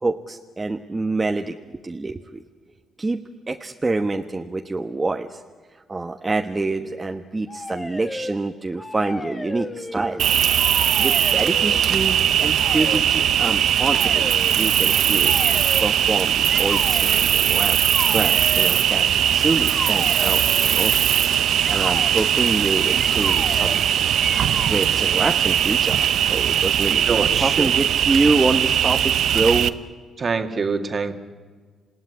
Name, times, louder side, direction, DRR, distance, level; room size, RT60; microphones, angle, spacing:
voice 1, 0.0-1.6 1.8-2.4 3.0-3.2 3.5-5.4 5.9-10.2 11.0-17.8 18.1-20.9 21.7-23.8 24.5-29.8, right 3 dB, 25° right, 4 dB, 1.3 m, -26 dB
sound 1, 7.5-8.4 8.7-10.2 10.5-11.8 12.5-13.0 13.9-14.5 15.2-16.0 16.5-17.2 17.8-18.7 19.6-20.8 21.6-22.1 23.0-23.9 24.2-24.9, left 2 dB, 25° left, 2.1 m, -33 dB
Cricket, 10.2-29.7, right 10 dB, 65° right, 0.9 m, -20 dB
voice 2, 27.1-27.7 30.2-31.1, right 4 dB, 45° right, 6 dB, 2.1 m, -24 dB
28.0 x 17.0 x 9.9 m, 1.5 s
hypercardioid pair, 50°, 0 cm